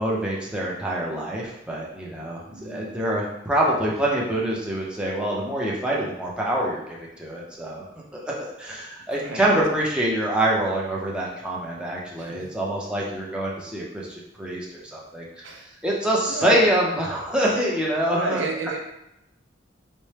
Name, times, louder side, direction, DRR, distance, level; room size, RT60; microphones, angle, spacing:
voice 1, 0.0-7.8 8.1-15.4 15.8-18.4, right 1 dB, 5° right, -4 dB, 0.6 m, -25 dB
voice 2, 2.5-3.1 9.1-9.6 12.2-12.5 15.4-15.6 16.3-16.7 18.1-18.8, right 3 dB, 75° right, 0 dB, 0.6 m, -31 dB
4.2 x 2.1 x 3.3 m, 0.84 s
head